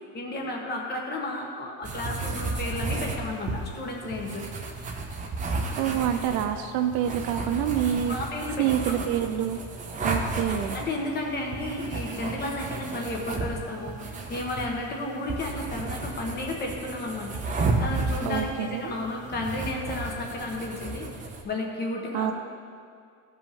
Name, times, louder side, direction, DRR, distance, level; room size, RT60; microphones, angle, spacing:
voice 1, 0.1-4.4 8.1-8.7 10.7-22.3, left 2 dB, 25° left, 0 dB, 1.3 m, -33 dB
sound 1, 1.8-21.4, right 3 dB, 20° right, 0.8 m, -33 dB
voice 2, 5.8-8.2 8.6-9.6 10.0-10.8 18.2-18.9 22.1-22.3, right 10 dB, 50° right, 7 dB, 0.5 m, -27 dB
14.5 x 5.2 x 3.6 m, 2.4 s
supercardioid pair, 145°, 39 cm